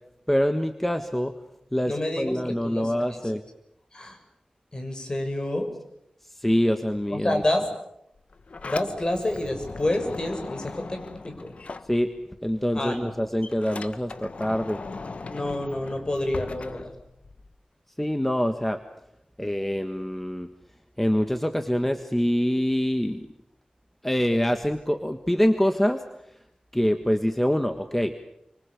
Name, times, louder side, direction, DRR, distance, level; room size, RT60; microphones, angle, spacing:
voice 1, 0.3-1.4 1.7-3.4 6.3-7.4 11.9-12.1 12.4-14.8 18.0-18.8 19.4-20.5 21.0-23.3 24.0-26.0 26.7-28.1, equal, 10° left, 6 dB, 1.6 m, -25 dB
voice 2, 1.9-3.3 3.9-4.2 4.7-5.7 7.1-7.7 8.6-11.5 12.7-13.1 15.3-16.9, left 1 dB, 35° left, 5 dB, 6.4 m, -29 dB
Sliding door, 8.2-12.5 12.8-17.5, left 3 dB, 65° left, 1.3 m, -39 dB
29.5 x 25.5 x 7.2 m, 0.80 s
wide cardioid pair, 95°, 2 cm